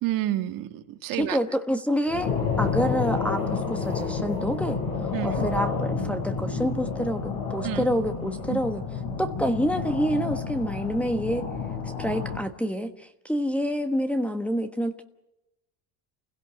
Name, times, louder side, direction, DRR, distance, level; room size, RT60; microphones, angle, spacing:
voice 1, 0.0-1.4 5.1-5.4 7.6-7.9 8.5-8.6, right 14 dB, 55° right, 8 dB, 1.8 m, -29 dB
voice 2, 1.1-2.3 2.6-8.8 9.2-11.5 12.0-15.0, equal, 5° left, 4 dB, 1.2 m, -27 dB
sound 1, 2.1-12.4, left 5 dB, 60° left, 7.5 m, -30 dB
28.5 x 16.5 x 7.9 m, 0.94 s
cardioid pair, 135°, 39 cm